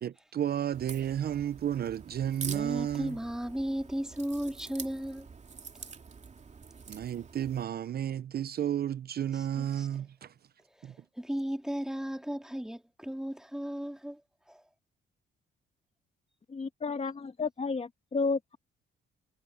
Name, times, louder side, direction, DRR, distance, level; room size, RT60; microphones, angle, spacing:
voice 1, 0.0-3.2 6.9-10.3 10.8-10.9, right 10 dB, 50° right, 0.7 m, -32 dB
Crack, 0.7-7.6, right 5 dB, 35° right, 2.6 m, -46 dB
voice 2, 2.4-5.3 9.8-9.9 11.2-14.2 14.5-14.6, equal, 5° right, 2.1 m, -35 dB
voice 3, 16.5-18.6, left 4 dB, 35° left, 1.5 m, -32 dB
cardioid pair, 90°, 20 cm